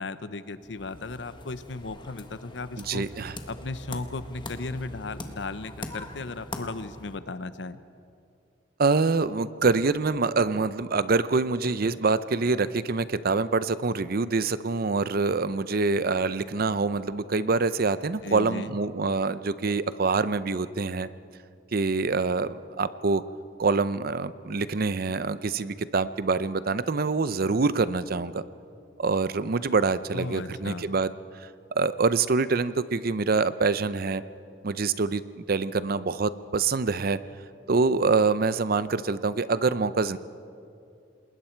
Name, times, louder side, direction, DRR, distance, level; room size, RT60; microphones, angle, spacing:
voice 1, 0.0-3.1 3.5-7.8 18.2-18.8 30.1-30.9, left 3 dB, 70° left, 13 dB, 0.8 m, -36 dB
sound 1, 0.6-7.2, left 2 dB, 25° left, 1.4 m, -42 dB
voice 2, 2.8-3.4 8.8-21.1 21.7-23.2 23.6-28.4 29.0-31.1 31.7-34.2 34.6-37.2 37.7-40.2, right 4 dB, 55° right, 15 dB, 0.6 m, -25 dB
28.0 x 20.5 x 4.5 m, 2.5 s
head